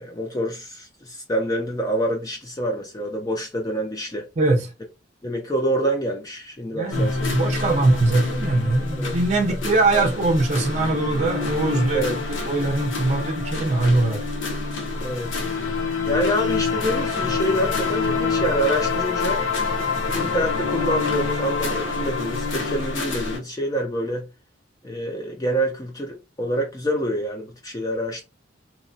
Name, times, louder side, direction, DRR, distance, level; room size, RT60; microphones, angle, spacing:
voice 1, 0.0-4.3 5.2-7.3 8.9-9.2 9.9-10.1 11.9-12.2 15.0-15.4 16.0-19.4 20.0-24.3 24.8-28.2, equal, 20° left, 0.4 m, -26 dB
voice 2, 4.4-4.7 6.7-12.0 12.5-14.2, right 2 dB, 35° right, 0.5 m, -21 dB
sound 1, 6.9-23.4, left 4 dB, 80° left, 0.9 m, -26 dB
2.9 x 2.2 x 2.6 m
head